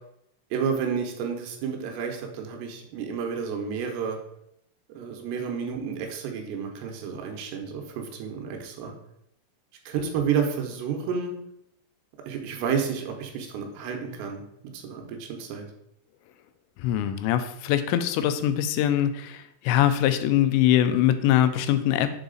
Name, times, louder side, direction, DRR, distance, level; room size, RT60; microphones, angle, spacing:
voice 1, 0.5-4.2 4.9-8.9 9.9-11.3 12.3-14.4 14.7-15.7, right 6 dB, 80° right, 3 dB, 3.0 m, -30 dB
voice 2, 16.8-22.1, left 11 dB, 90° left, 10 dB, 2.9 m, -23 dB
7.1 x 3.9 x 3.8 m, 0.76 s
omnidirectional pair, 5.0 m